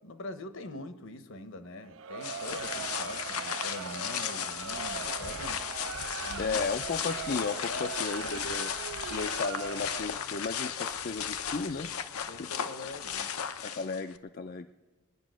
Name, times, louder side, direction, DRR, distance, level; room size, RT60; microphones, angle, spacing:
voice 1, 0.0-5.6 6.1-6.8 7.6-7.9 12.3-13.3, left 2 dB, 60° left, 10 dB, 1.0 m, -43 dB
Crowd, 1.8-10.3, right 7 dB, 60° right, 0.4 m, -40 dB
sound 1, 2.2-14.2, left 8 dB, 85° left, 0.8 m, -35 dB
voice 2, 6.4-8.7 9.1-11.9 12.4-12.5 13.6-14.7, left 4 dB, 45° left, 7 dB, 0.4 m, -34 dB
21.5 x 9.7 x 6.3 m, 1.3 s
head